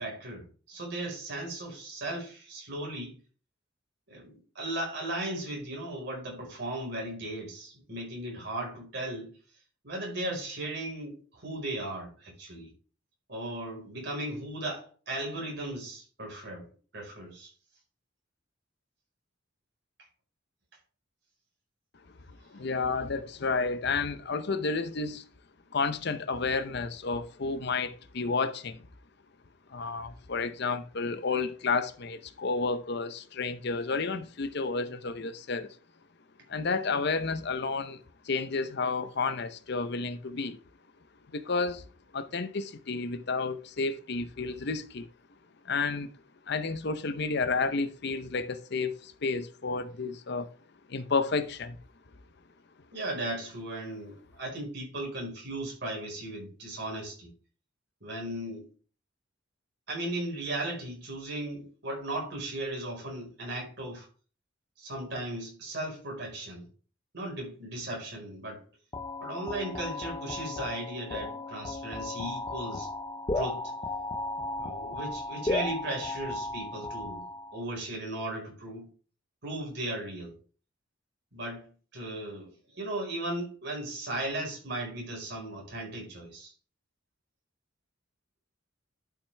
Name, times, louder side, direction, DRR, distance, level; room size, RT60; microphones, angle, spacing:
voice 1, 0.0-3.2 4.1-9.3 9.8-12.7 13.3-16.7 16.9-17.5 52.9-57.3 58.0-58.7 59.9-64.1 64.8-66.7 67.1-68.6 69.2-72.9 73.3-73.7 74.6-78.9 79.4-80.3 81.3-81.6 81.9-86.5, right 1 dB, 60° right, 4.7 m, -36 dB
voice 2, 22.5-25.2 25.7-28.8 29.7-35.7 36.5-40.6 41.3-41.8 42.1-45.1 45.6-46.1 46.5-50.5 50.9-51.8, left 4 dB, 55° left, 0.7 m, -31 dB
sound 1, 68.9-77.6, left 2 dB, 20° left, 0.5 m, -35 dB
11.5 x 5.9 x 3.4 m
head